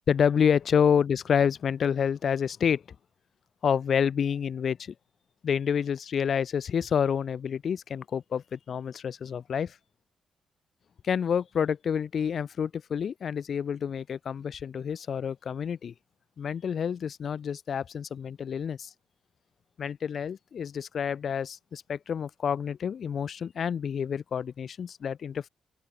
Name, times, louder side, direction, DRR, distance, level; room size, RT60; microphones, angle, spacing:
voice 1, 0.1-2.8 3.6-4.9 5.4-9.8 11.0-15.9 16.4-18.9 19.8-25.5, left 7 dB, 55° left, 0.3 m, -28 dB
open air
cardioid pair, 115°, 0 cm